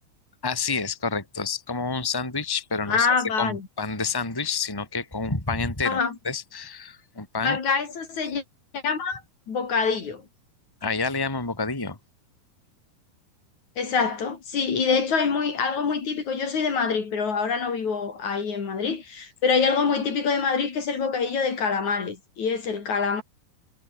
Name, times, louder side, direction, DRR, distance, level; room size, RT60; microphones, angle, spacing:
voice 1, 0.4-3.1 3.4-7.6 10.8-12.0, left 4 dB, 5° left, 3.0 m, -29 dB
voice 2, 2.9-3.6 5.8-6.1 7.4-8.4 8.7-9.2 9.5-10.2 13.8-23.2, left 5 dB, 55° left, 4.4 m, -25 dB
omnidirectional pair, 4.2 m